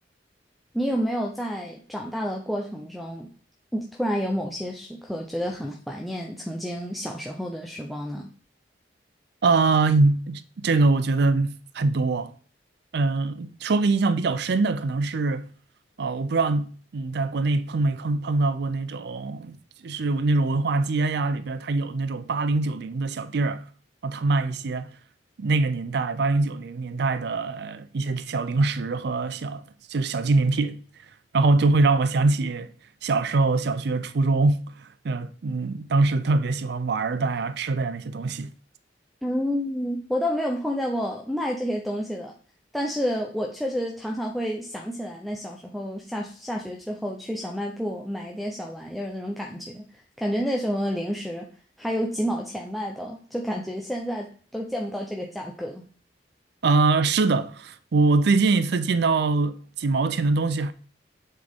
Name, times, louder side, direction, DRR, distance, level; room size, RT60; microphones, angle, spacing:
voice 1, 0.7-3.3 3.7-8.3 39.2-42.3 42.7-49.8 50.2-51.5 51.8-55.8, equal, ahead, 0.6 m, -29 dB
voice 2, 9.4-12.3 12.9-15.5 16.0-19.6 19.8-23.6 24.0-24.9 25.4-29.6 29.9-30.8 31.3-32.7 33.0-34.6 35.0-38.5 56.6-60.7, right 3 dB, 65° right, 0.5 m, -23 dB
7.6 x 4.3 x 3.5 m
head